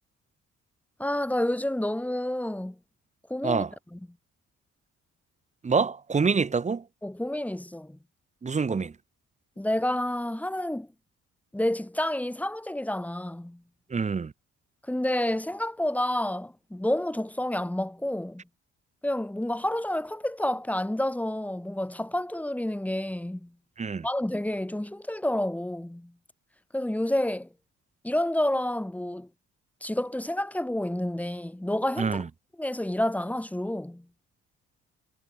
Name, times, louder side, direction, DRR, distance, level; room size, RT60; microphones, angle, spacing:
voice 1, 1.0-2.7 3.3-3.6 3.9-4.0 7.0-8.0 9.6-10.9 11.5-13.6 14.9-18.4 19.0-23.5 24.0-26.1 26.7-27.5 28.0-29.3 29.8-32.2 32.6-34.0, left 1 dB, 5° left, 1.5 m, -29 dB
voice 2, 5.6-6.8 8.4-8.9 13.9-14.3 23.8-24.1 32.0-32.3, right 5 dB, 25° right, 0.8 m, -26 dB
cardioid pair, 90°, 30 cm